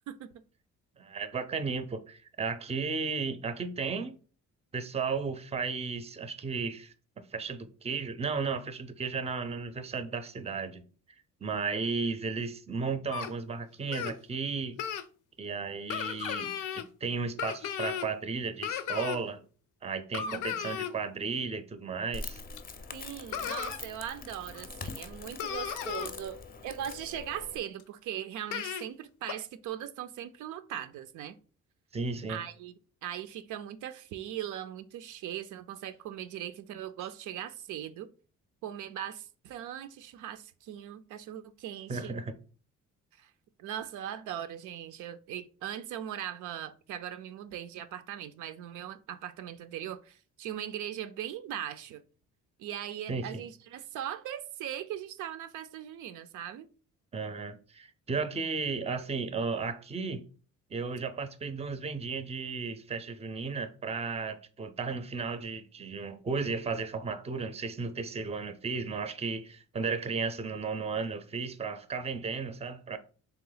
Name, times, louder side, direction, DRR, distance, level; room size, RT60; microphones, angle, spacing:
voice 1, 1.0-4.2 4.7-6.9 7.3-10.8 11.4-14.8 15.4-19.4 19.8-22.4 31.9-32.4 41.9-42.3 53.1-53.4 57.1-60.2 60.7-73.0, right 4 dB, 20° right, 0.5 m, -34 dB
sound 1, 13.1-13.3 13.9-14.1 14.8-15.0 15.9-16.8 17.4-18.1 18.6-19.2 20.1-20.9 22.6-22.7 23.3-23.8 24.5-24.6 25.0-25.1 25.4-26.1 27.8-27.9 28.5-28.8 29.3-29.4, left 9 dB, 75° left, 0.5 m, -35 dB
voice 2, 20.3-20.8 22.9-31.4 32.3-32.7 33.0-38.1 38.6-42.2 43.2-43.3 43.6-52.0 52.6-56.7, right 10 dB, 80° right, 0.5 m, -40 dB
Crackle, 22.1-27.6, left 4 dB, 30° left, 0.5 m, -43 dB
3.5 x 2.9 x 3.9 m
cardioid pair, 90°, 30 cm